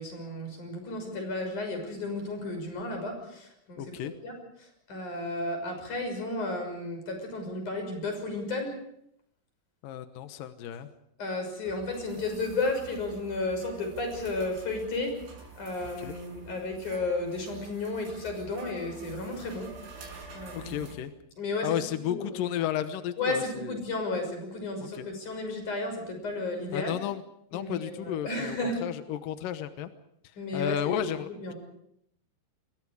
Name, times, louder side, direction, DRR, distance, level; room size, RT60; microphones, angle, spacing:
voice 1, 0.0-3.8 4.2-4.3 4.9-8.8 11.2-15.2 15.6-19.7 20.3-20.9 21.4-22.5 23.2-27.0 27.5-28.8 30.4-31.0 31.3-31.6, left 2 dB, 40° left, 5 dB, 7.3 m, -33 dB
voice 2, 3.8-4.1 9.8-10.9 16.0-16.2 20.5-21.1 21.6-23.8 24.8-25.1 26.7-27.2 27.5-29.9 30.5-31.5, left 11 dB, 75° left, 9 dB, 2.0 m, -33 dB
sound 1, 11.6-21.0, right 4 dB, 80° right, 8.3 m, -48 dB
28.5 x 22.5 x 4.9 m, 0.74 s
omnidirectional pair, 5.5 m